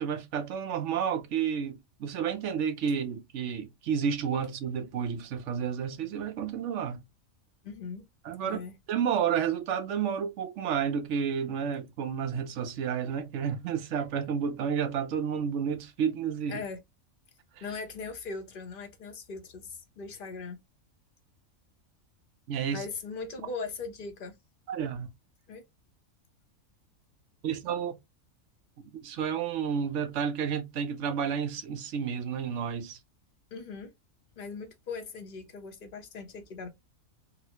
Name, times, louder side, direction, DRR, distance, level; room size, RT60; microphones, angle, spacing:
voice 1, 0.0-7.0 8.2-8.6 8.9-16.6 17.6-17.7 22.5-22.8 24.7-25.1 27.4-28.0 28.8-33.0, right 7 dB, 65° right, 0.8 m, -31 dB
voice 2, 7.6-8.0 8.4-8.7 16.5-16.8 17.6-20.6 22.7-24.3 25.5-25.6 33.5-33.9 34.4-36.7, left 4 dB, 50° left, 0.7 m, -39 dB
3.9 x 2.0 x 2.8 m
omnidirectional pair, 1.5 m